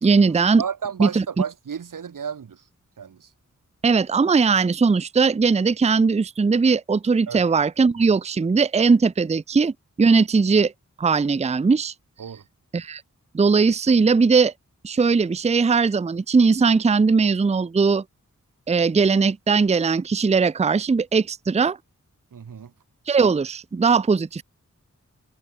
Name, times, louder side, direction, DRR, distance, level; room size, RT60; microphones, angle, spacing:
voice 1, 0.0-0.6 1.0-1.2 3.8-10.7 11.0-11.9 12.7-13.0 13.3-14.5 14.8-18.0 18.7-21.8 23.1-24.4, right 4 dB, 20° right, 0.4 m, -19 dB
voice 2, 0.6-2.6 3.0-3.3 7.3-7.4 12.2-12.4 22.3-22.7, right 7 dB, 90° right, 1.1 m, -32 dB
wide cardioid pair, 70°, 31 cm